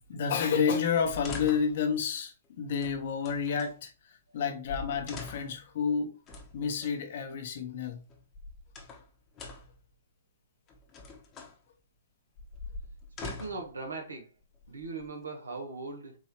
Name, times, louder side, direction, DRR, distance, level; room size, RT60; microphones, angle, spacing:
voice 1, 0.1-6.1 6.5-8.0, left 6 dB, 55° left, 1.1 m, -30 dB
sound 1, 1.0-1.8 2.8-3.7 4.4-4.5 4.7-5.6 6.3-7.0 8.1-9.1 9.4-9.8 10.7-11.6 12.4-13.7 14.5-15.2, left 3 dB, 25° left, 1.1 m, -43 dB
voice 2, 13.2-14.3 14.7-16.2, right 3 dB, 90° right, 1.4 m, -39 dB
4.6 x 3.0 x 3.1 m
hypercardioid pair, 130°, 0 cm